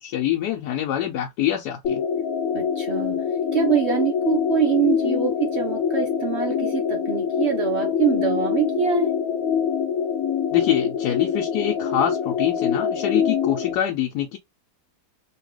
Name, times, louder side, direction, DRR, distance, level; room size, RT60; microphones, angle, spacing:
voice 1, 0.0-2.0 10.5-14.4, left 11 dB, 80° left, 1.2 m, -25 dB
sound 1, 1.8-13.7, left 7 dB, 65° left, 1.0 m, -24 dB
voice 2, 2.5-9.2, right 8 dB, 60° right, 0.7 m, -24 dB
2.9 x 2.8 x 3.2 m
omnidirectional pair, 1.7 m